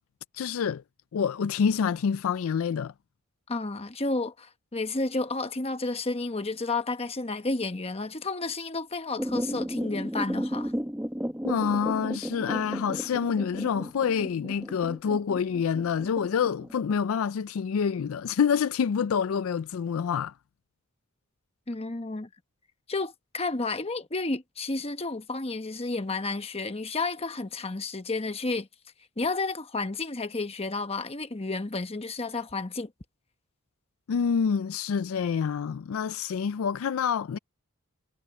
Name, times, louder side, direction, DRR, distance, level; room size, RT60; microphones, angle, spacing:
voice 1, 0.3-0.8 1.1-2.9 11.4-20.3 34.1-37.4, left 7 dB, 75° left, 0.4 m, -27 dB
voice 2, 3.5-10.7 21.7-22.3 22.9-28.7 29.2-32.9, left 3 dB, 30° left, 1.1 m, -31 dB
sound 1, 9.2-16.9, equal, 5° right, 1.3 m, -34 dB
head